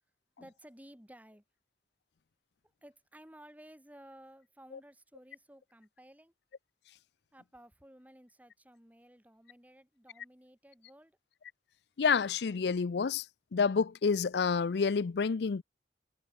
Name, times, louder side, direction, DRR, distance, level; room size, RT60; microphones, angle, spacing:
voice 1, 0.4-1.4 2.8-6.3 7.3-11.2, right 1 dB, 10° right, 3.9 m, -56 dB
voice 2, 12.0-13.3 13.5-15.6, left 5 dB, 70° left, 0.5 m, -28 dB
head